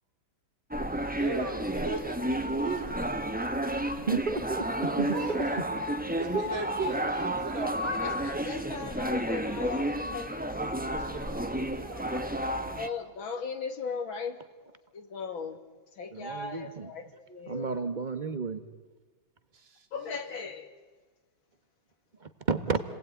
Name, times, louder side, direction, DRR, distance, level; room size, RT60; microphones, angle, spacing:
sound 1, 0.7-12.9, right 1 dB, 5° right, 1.0 m, -31 dB
voice 1, 1.2-2.9 4.9-5.6 6.1-8.3 11.0-12.9 19.5-20.4, right 4 dB, 75° right, 3.4 m, -39 dB
voice 2, 3.9-5.5 6.3-6.5 16.1-16.9 17.5-18.6 22.2-22.8, right 4 dB, 25° right, 1.5 m, -32 dB
voice 3, 8.0-10.5 12.8-14.4 14.9-15.6 15.9-17.7 19.9-20.7, left 5 dB, 85° left, 3.0 m, -37 dB
29.5 x 20.0 x 9.4 m
omnidirectional pair, 2.1 m